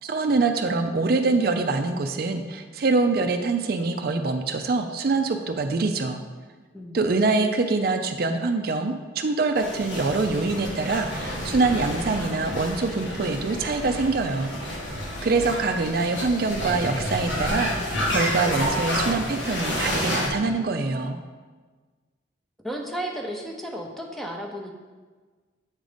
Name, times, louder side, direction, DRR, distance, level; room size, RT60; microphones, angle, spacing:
voice 1, 0.0-6.2 6.9-14.5 15.2-21.2, right 3 dB, 55° right, 6 dB, 0.4 m, -24 dB
voice 2, 6.7-7.3 22.6-24.7, equal, ahead, 0 dB, 0.6 m, -34 dB
sound 1, 9.6-20.3, equal, 85° left, 1.5 m, -30 dB
8.0 x 3.9 x 5.0 m, 1.4 s
head